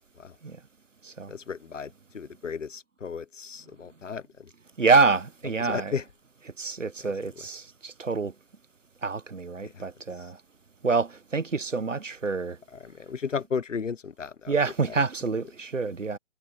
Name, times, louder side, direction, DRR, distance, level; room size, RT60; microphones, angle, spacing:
voice 1, 1.3-4.5 5.6-6.0 9.6-9.8 12.7-14.5 14.9-15.0, left 6 dB, 85° left, 0.7 m, -34 dB
voice 2, 4.8-6.0 6.6-8.3 9.0-10.4 10.8-12.6 14.5-16.2, right 4 dB, 90° right, 1.1 m, -26 dB
figure-of-eight pair, 145°, 37 cm